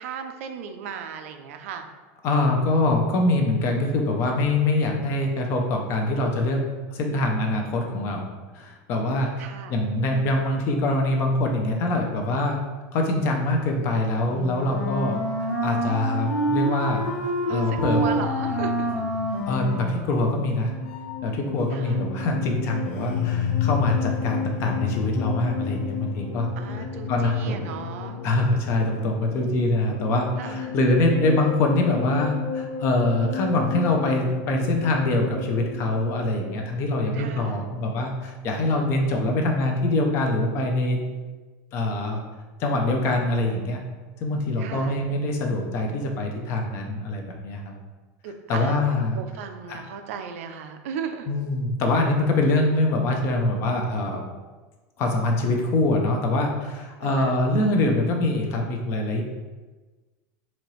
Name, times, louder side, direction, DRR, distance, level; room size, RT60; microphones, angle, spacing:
voice 1, 0.0-1.9 9.4-9.8 17.5-18.9 21.7-22.1 26.6-28.2 30.4-30.7 37.1-37.6 44.6-45.0 48.2-48.8 49.1-51.3 57.0-57.4, right 7 dB, 80° right, 6 dB, 0.4 m, -36 dB
voice 2, 2.2-6.6 6.9-8.3 8.5-9.3 9.7-12.6 12.9-15.1 15.6-17.1 17.5-18.0 19.5-20.7 21.2-26.5 27.1-27.7 28.2-41.0 41.7-42.2 42.6-43.8 44.2-47.7 48.5-49.2 49.7-49.8 51.3-54.2 55.0-59.2, left 2 dB, 35° left, 2 dB, 0.5 m, -24 dB
Wind instrument woodwind instrument, 14.3-20.3, equal, 15° left, 1.2 m, -27 dB
sound 1, 17.8-36.6, left 6 dB, 80° left, 0.5 m, -32 dB
4.1 x 2.8 x 3.0 m, 1.3 s
supercardioid pair, 175°, 7 cm